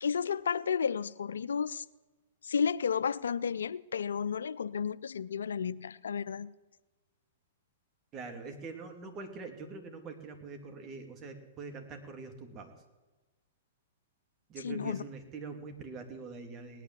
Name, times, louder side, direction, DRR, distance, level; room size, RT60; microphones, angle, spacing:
voice 1, 0.0-1.8 2.4-6.5 14.6-15.0, left 6 dB, 80° left, 17 dB, 0.5 m, -32 dB
voice 2, 8.1-12.7 14.5-16.8, right 4 dB, 30° right, 5 dB, 2.8 m, -44 dB
18.5 x 10.0 x 7.6 m, 1.2 s
hypercardioid pair, 120°, 0 cm